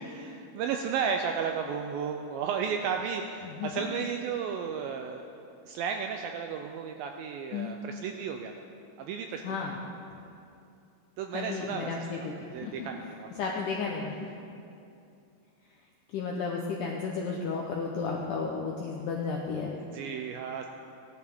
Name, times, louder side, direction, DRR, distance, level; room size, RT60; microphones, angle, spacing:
voice 1, 0.0-5.3 5.7-8.5 9.0-9.4 11.2-13.3 19.9-20.7, right 6 dB, 85° right, 4 dB, 2.1 m, -33 dB
voice 2, 3.4-3.8 7.5-7.7 9.4-9.8 11.3-12.3 12.6-12.7 13.4-14.3 16.1-19.8, left 5 dB, 85° left, 0 dB, 1.8 m, -33 dB
16.5 x 11.0 x 3.6 m, 2.6 s
omnidirectional pair, 4.6 m